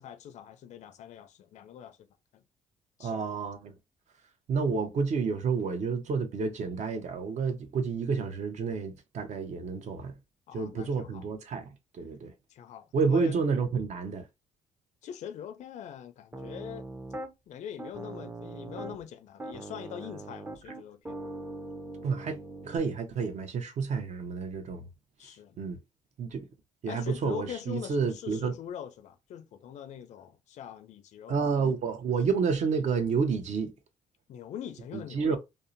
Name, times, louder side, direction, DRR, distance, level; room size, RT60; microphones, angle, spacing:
voice 1, 0.0-2.0 2.3-2.4 3.0-3.4 10.5-11.3 12.5-13.4 15.0-16.9 17.5-21.1 25.2-25.6 26.9-31.4 34.3-35.4, left 9 dB, 60° left, 0.4 m, -42 dB
voice 2, 3.0-3.7 4.5-10.1 10.5-12.3 12.9-14.2 22.0-24.9 25.6-25.8 26.2-26.5 26.8-28.5 31.3-33.7 34.9-35.4, right 5 dB, 55° right, 0.6 m, -30 dB
Piano, 16.3-17.3 17.8-19.0 19.4-22.8, right 2 dB, 15° right, 0.5 m, -41 dB
2.7 x 2.1 x 2.5 m
cardioid pair, 80°, 14 cm